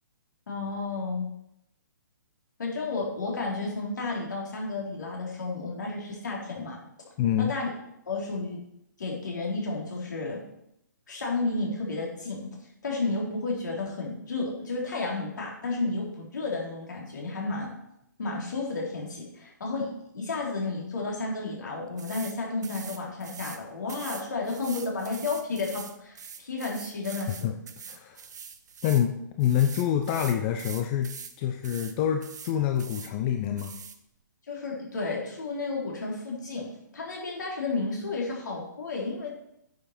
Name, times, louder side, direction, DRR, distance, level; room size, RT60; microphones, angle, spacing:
voice 1, 0.5-1.3 2.6-6.8 7.4-7.7 8.1-8.6 9.0-10.4 11.1-12.5 12.8-17.7 18.2-19.9 20.1-27.5 34.5-36.7 36.9-39.3, left 3 dB, 65° left, -2 dB, 3.7 m, -32 dB
voice 2, 7.2-7.5 27.4-27.5 27.9-28.2 28.8-31.1 31.4-33.8, left 10 dB, 30° left, 5 dB, 0.7 m, -26 dB
sound 1, 22.0-22.4 22.6-23.6 23.9-29.1 29.4-31.4 31.6-31.9 32.2-33.1 33.6-34.0, right 6 dB, 60° right, 1.0 m, -43 dB
9.4 x 6.9 x 4.5 m, 0.78 s
figure-of-eight pair, 125°, 11 cm